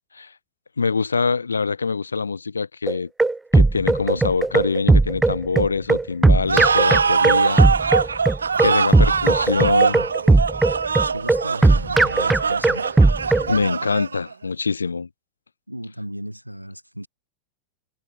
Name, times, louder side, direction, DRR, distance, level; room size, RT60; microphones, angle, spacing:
voice 1, 0.8-3.1 3.5-7.6 8.0-8.2 8.6-10.1 13.5-15.1, left 4 dB, 75° left, 1.5 m, -24 dB
sound 1, 2.9-13.5, right 3 dB, 10° right, 0.4 m, -17 dB
sound 2, 6.5-14.3, right 5 dB, 75° right, 0.6 m, -22 dB
voice 2, 11.1-12.9 15.7-17.1, equal, 90° right, 5.4 m, -36 dB
figure-of-eight pair, 90°, 0 cm